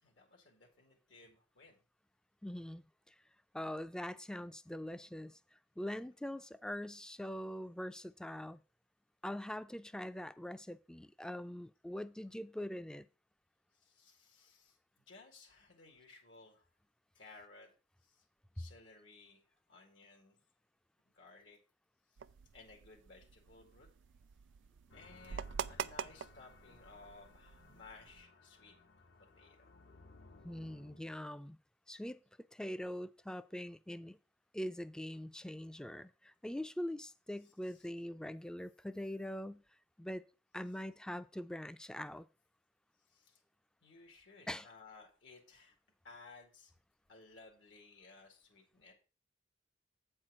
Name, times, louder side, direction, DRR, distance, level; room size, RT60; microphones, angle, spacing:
voice 1, 0.0-1.8 13.7-14.8 15.1-16.7 17.1-17.7 18.0-18.2 18.5-19.4 19.7-20.4 21.1-21.6 22.5-23.9 24.9-28.8 29.4-29.7 37.4-37.9 43.1-43.4 43.8-45.8 46.0-46.7 47.1-48.9, left 3 dB, 85° left, 2.0 m, -58 dB
voice 2, 2.4-3.1 3.5-5.4 5.8-8.6 9.2-13.1 30.4-31.6 31.9-32.2 32.5-34.2 34.5-39.6 40.0-40.2 40.5-42.3 44.5-44.7, left 1 dB, 5° left, 0.3 m, -43 dB
sound 1, 22.2-28.2, right 7 dB, 85° right, 0.4 m, -46 dB
sound 2, 24.9-31.2, left 3 dB, 70° left, 0.8 m, -61 dB
8.2 x 4.5 x 6.0 m
head